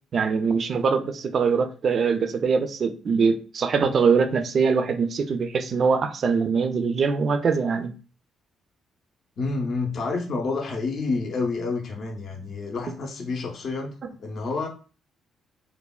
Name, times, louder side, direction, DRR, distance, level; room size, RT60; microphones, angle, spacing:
voice 1, 0.1-7.9, right 5 dB, 50° right, 0.3 m, -23 dB
voice 2, 9.4-14.7, left 3 dB, 55° left, 0.5 m, -29 dB
3.2 x 2.1 x 2.2 m
cardioid pair, 90°, 0 cm